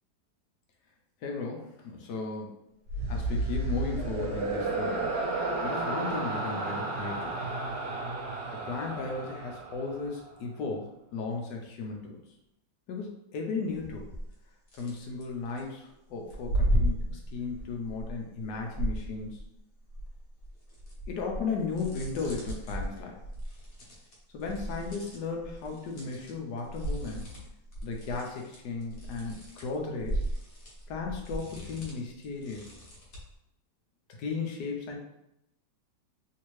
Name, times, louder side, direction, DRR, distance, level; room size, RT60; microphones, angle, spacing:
voice 1, 1.2-2.6 3.1-5.1 5.6-7.4 8.5-12.2 12.9-14.1 14.7-19.4 21.1-23.2 24.3-27.3 27.8-30.2 30.9-32.7 34.2-35.0, left 4 dB, 75° left, 1 dB, 1.2 m, -35 dB
sound 1, 2.9-10.3, right 2 dB, 60° right, 1.1 m, -32 dB
sound 2, 13.7-14.3 14.7-15.6 16.3-19.6 19.9-26.3 26.6-33.3, right 1 dB, 55° left, 1.3 m, -35 dB
3.2 x 2.8 x 3.0 m, 0.84 s
omnidirectional pair, 1.9 m